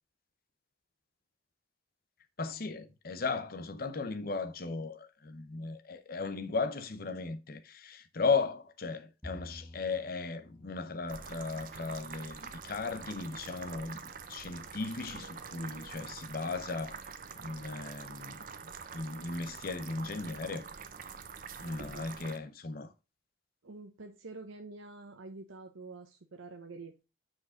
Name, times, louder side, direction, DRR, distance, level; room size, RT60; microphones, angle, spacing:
voice 1, 2.4-20.6 21.6-22.9, left 4 dB, 45° left, 0.7 m, -36 dB
Bowed string instrument, 9.2-15.6, left 1 dB, 5° left, 0.7 m, -54 dB
sound 1, 11.1-22.4, right 6 dB, 45° right, 0.6 m, -46 dB
voice 2, 21.6-22.3 23.6-26.9, right 3 dB, 80° right, 0.8 m, -48 dB
6.0 x 5.0 x 4.9 m
head